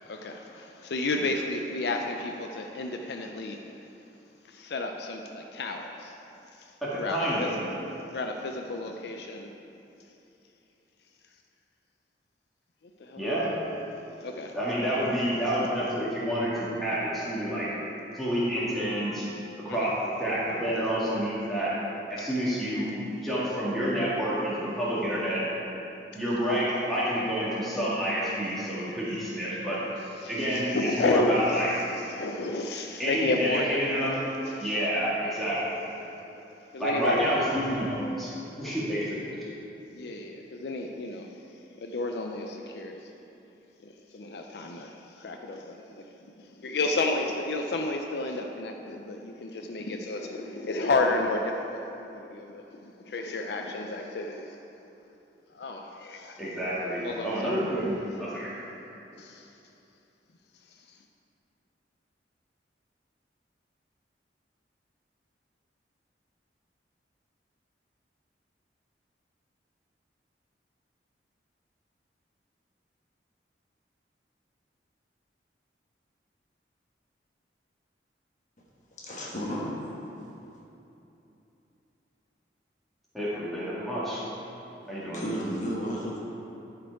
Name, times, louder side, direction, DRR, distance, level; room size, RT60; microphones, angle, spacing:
voice 1, 0.0-3.6 4.5-6.2 6.5-7.6 8.1-9.5 13.0-13.3 14.2-14.6 19.7-19.9 30.2-31.6 31.9-34.2 34.4-34.8 36.7-37.4 39.9-43.1 43.8-54.6 55.5-56.4 57.0-57.5 59.2-59.5 60.6-61.0, left 2 dB, 65° left, 3 dB, 0.4 m, -32 dB
voice 2, 6.8-7.6 13.2-13.5 14.5-17.7 18.1-19.3 19.6-19.9 20.2-21.8 22.1-22.9 23.2-25.5 26.1-29.8 30.3-31.8 33.0-34.2 34.6-35.8 36.8-39.4 56.4-58.5 83.1-84.2 84.9-85.2, equal, ahead, -10 dB, 1.9 m, -29 dB
voice 3, 79.0-79.8 85.1-86.2, equal, 45° left, -4 dB, 1.2 m, -32 dB
11.0 x 4.6 x 4.7 m, 2.9 s
head